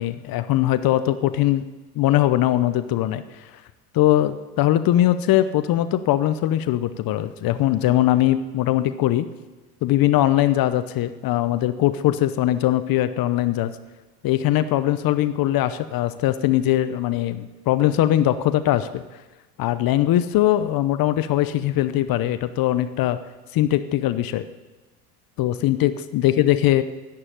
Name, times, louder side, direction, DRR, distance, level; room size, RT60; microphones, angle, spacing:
voice 1, 0.0-1.7 2.0-3.2 3.5-3.6 3.9-9.3 9.8-13.8 14.2-19.0 19.6-23.2 23.5-24.4 25.4-26.8, left 13 dB, 50° left, 12 dB, 0.9 m, -21 dB
12.0 x 11.0 x 9.0 m, 1.2 s
hypercardioid pair, 80°, 46 cm